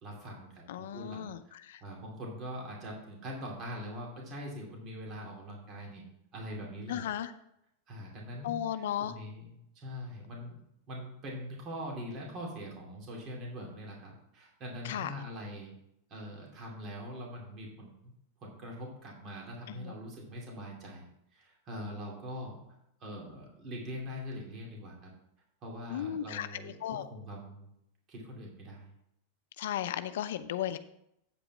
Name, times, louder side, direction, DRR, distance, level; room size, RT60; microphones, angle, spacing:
voice 1, 0.0-6.0 6.3-7.0 7.9-10.6 10.9-15.7 16.1-18.1 18.4-21.0 21.3-22.6 23.0-25.1 25.6-27.7 28.1-28.9, equal, 30° right, -2 dB, 2.5 m, -43 dB
voice 2, 0.7-1.8 6.9-7.3 8.4-9.2 14.8-15.1 19.7-19.9 25.9-27.1 29.6-30.8, left 11 dB, 75° left, 12 dB, 0.5 m, -35 dB
8.5 x 5.1 x 6.0 m, 0.77 s
supercardioid pair, 150°, 0 cm